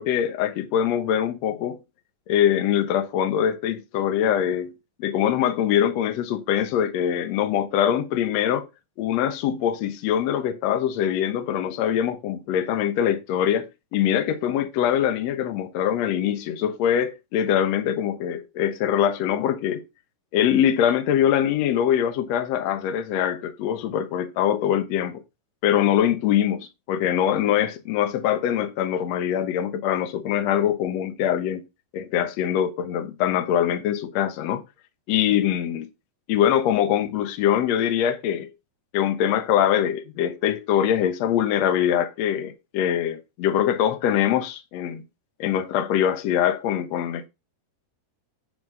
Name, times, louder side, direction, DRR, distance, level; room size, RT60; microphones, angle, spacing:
voice 1, 0.0-1.8 2.3-4.7 5.0-8.7 9.0-19.8 20.3-25.2 25.6-31.7 31.9-34.6 35.1-35.9 36.3-38.5 38.9-45.0 45.4-47.3, left 10 dB, 75° left, 1.5 m, -23 dB
9.5 x 4.0 x 5.4 m
omnidirectional pair, 4.4 m